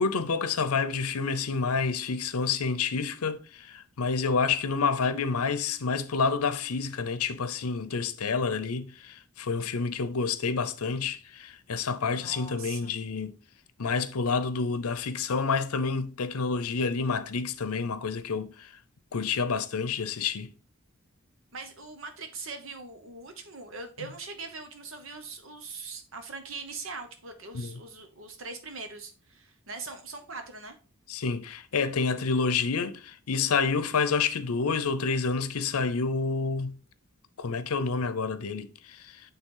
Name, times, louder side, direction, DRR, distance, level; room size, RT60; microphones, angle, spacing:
voice 1, 0.0-13.4 13.8-18.7 19.1-20.5 27.5-27.7 31.1-36.7 37.4-39.2, left 5 dB, 90° left, 0.7 m, -28 dB
voice 2, 12.2-12.9 21.5-30.8, right 4 dB, 60° right, 1.2 m, -41 dB
9.0 x 3.4 x 3.8 m
head